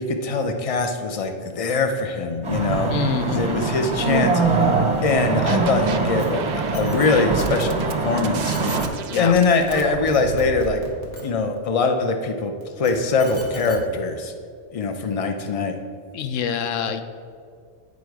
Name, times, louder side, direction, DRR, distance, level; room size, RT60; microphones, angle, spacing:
voice 1, 0.0-2.9 3.2-4.7 5.0-8.6 9.2-10.8 11.2-14.3 14.7-15.7, left 4 dB, 45° left, 6 dB, 0.4 m, -22 dB
sound 1, 2.4-8.9, right 4 dB, 30° right, 0.7 m, -23 dB
voice 2, 2.9-3.7 9.1-9.4 16.1-17.0, left 7 dB, 80° left, 9 dB, 0.9 m, -26 dB
sound 2, 5.1-6.0 6.3-10.7, right 7 dB, 60° right, 0.6 m, -33 dB
sound 3, 6.2-6.3 6.6-7.1 8.2-8.3 8.5-8.9 9.5-9.8 10.1-11.2 12.6-13.8 14.8-14.9, left 2 dB, 65° left, 1.5 m, -36 dB
8.4 x 4.8 x 4.7 m, 2.2 s
omnidirectional pair, 1.3 m